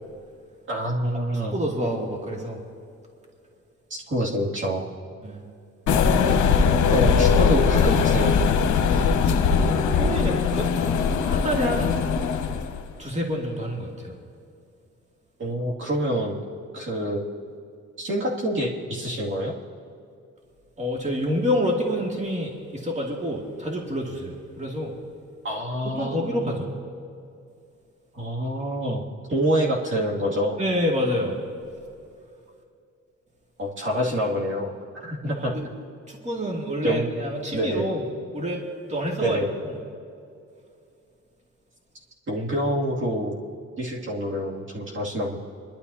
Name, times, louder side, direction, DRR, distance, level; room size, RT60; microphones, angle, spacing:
voice 1, 0.7-1.5 3.9-4.8 6.9-8.3 15.4-16.4 16.7-17.2 18.0-19.5 25.4-26.5 28.1-29.0 29.3-30.6 33.6-34.7 35.0-35.5 36.7-37.1 37.5-37.8 39.2-39.5 42.3-43.3 43.8-45.4, equal, 40° right, -4 dB, 2.3 m, -26 dB
voice 2, 1.3-2.6 5.2-5.4 8.8-12.0 13.0-14.2 20.8-24.9 26.0-26.7 30.6-31.4 35.4-35.7 36.1-38.1 38.3-38.6 38.9-39.8, equal, 25° right, -1 dB, 2.3 m, -28 dB
sound 1, 5.9-12.8, left 6 dB, 75° left, 1.0 m, -20 dB
26.5 x 11.5 x 2.8 m, 2.5 s
cardioid pair, 90°, 30 cm